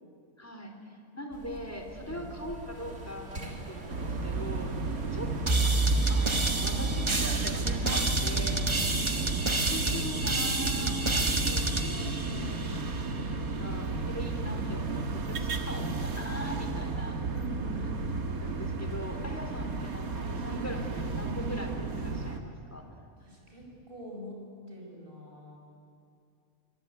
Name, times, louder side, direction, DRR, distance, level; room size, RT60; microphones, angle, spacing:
voice 1, 0.4-0.7 1.1-5.3 5.6-5.7 6.1-8.6 9.6-12.8 13.3-17.2 17.8-17.9 18.4-22.8, equal, 10° left, 4 dB, 3.5 m, -41 dB
sound 1, 1.3-10.0, right 2 dB, 55° right, 3.1 m, -42 dB
sound 2, 3.9-22.4, right 3 dB, 90° right, 2.1 m, -33 dB
sound 3, 5.5-13.0, right 2 dB, 20° right, 1.2 m, -29 dB
voice 2, 8.7-9.4 17.3-17.9 23.2-24.4 24.7-25.6, equal, 40° right, 0 dB, 6.3 m, -45 dB
24.5 x 23.5 x 9.8 m, 2.4 s
omnidirectional pair, 1.5 m